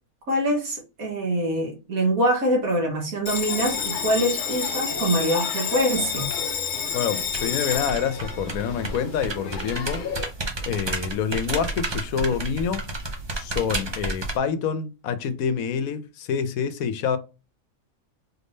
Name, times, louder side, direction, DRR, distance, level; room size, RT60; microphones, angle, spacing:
voice 1, 0.3-6.3, right 1 dB, 75° right, 1.9 m, -24 dB
Bell, 3.3-10.3, left 7 dB, 50° left, 0.6 m, -29 dB
voice 2, 6.9-10.0 10.6-12.8 13.3-17.2, left 7 dB, 80° left, 1.1 m, -27 dB
sound 1, 7.2-14.4, right 2 dB, 35° right, 0.4 m, -32 dB
4.3 x 3.5 x 2.6 m
omnidirectional pair, 1.5 m